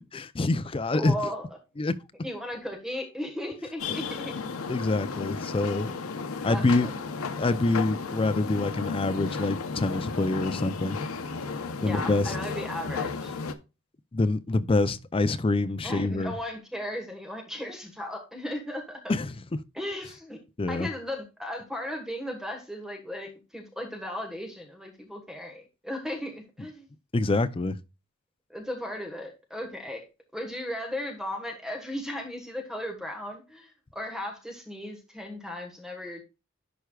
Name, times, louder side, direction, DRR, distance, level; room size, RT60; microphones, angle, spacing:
voice 1, 0.1-1.2 1.8-1.9 4.7-5.9 6.4-6.9 7.4-11.0 11.8-12.3 14.1-16.3 19.1-19.3 20.6-20.9 27.1-27.8, left 2 dB, 25° left, 0.5 m, -26 dB
voice 2, 0.9-1.5 2.2-4.6 6.5-6.9 11.8-13.3 15.8-19.1 19.7-20.4 20.7-26.9 28.5-30.1 30.3-36.2, left 1 dB, ahead, 1.4 m, -36 dB
sound 1, 3.8-13.5, left 4 dB, 85° left, 0.8 m, -34 dB
11.5 x 4.6 x 2.3 m
head